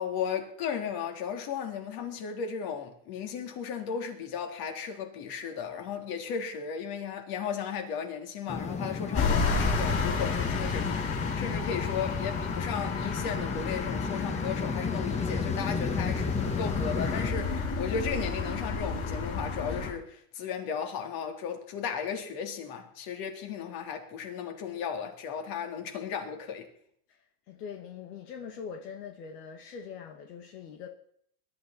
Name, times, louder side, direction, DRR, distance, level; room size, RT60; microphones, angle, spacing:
voice 1, 0.0-26.7, left 7 dB, 50° left, 3.7 m, -35 dB
sound 1, 8.5-17.3, left 4 dB, 15° left, 1.5 m, -34 dB
sound 2, 9.1-19.9, left 4 dB, 30° left, 6.5 m, -31 dB
voice 2, 27.5-30.9, left 6 dB, 80° left, 2.3 m, -42 dB
21.5 x 12.0 x 4.5 m
supercardioid pair, 120°, 47 cm